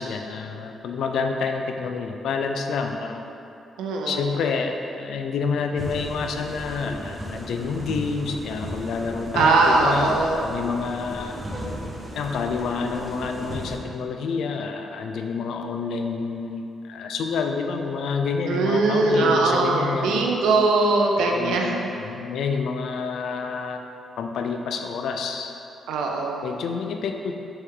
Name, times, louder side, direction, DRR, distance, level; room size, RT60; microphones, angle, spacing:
voice 1, 0.0-3.2 4.0-11.4 12.1-20.3 21.1-23.8 24.2-25.5 26.4-27.3, left 5 dB, 75° left, 4 dB, 0.3 m, -28 dB
voice 2, 3.8-4.3 9.3-10.4 18.5-21.8 25.9-26.5, right 3 dB, 90° right, 1 dB, 0.4 m, -21 dB
sound 1, 5.8-13.8, equal, 25° right, 0.7 m, -35 dB
3.4 x 3.1 x 4.6 m, 2.8 s
cardioid pair, 75°, 0 cm